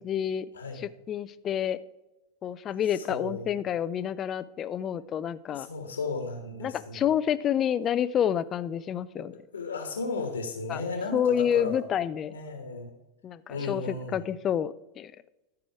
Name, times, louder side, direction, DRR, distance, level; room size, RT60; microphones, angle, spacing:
voice 1, 0.0-0.5 0.7-1.8 2.4-5.7 6.6-9.3 10.7-10.8 11.1-12.3 13.2-15.1, left 9 dB, 30° left, 16 dB, 0.4 m, -28 dB
voice 2, 0.5-0.8 2.9-3.6 5.5-7.1 9.1-9.3 9.5-11.8 12.3-12.9 13.5-14.3, left 3 dB, 75° left, 3 dB, 1.3 m, -35 dB
14.0 x 4.9 x 4.6 m, 1.0 s
figure-of-eight pair, 85°, 0 cm